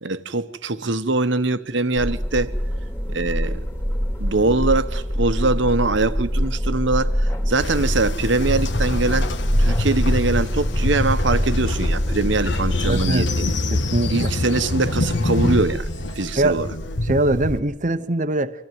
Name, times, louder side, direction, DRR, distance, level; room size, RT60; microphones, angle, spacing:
voice 1, 0.0-2.5 3.1-3.6 4.2-9.3 9.6-13.5 14.1-15.9 16.2-16.7, right 3 dB, 65° right, 1.1 m, -22 dB
sound 1, 1.9-13.1, equal, 15° left, 2.6 m, -24 dB
Train, 7.6-17.6, left 2 dB, 60° left, 1.5 m, -25 dB
voice 2, 12.8-13.3 13.7-14.3 16.4-16.7 17.0-18.5, right 2 dB, 40° right, 0.9 m, -22 dB
25.5 x 15.5 x 9.4 m
head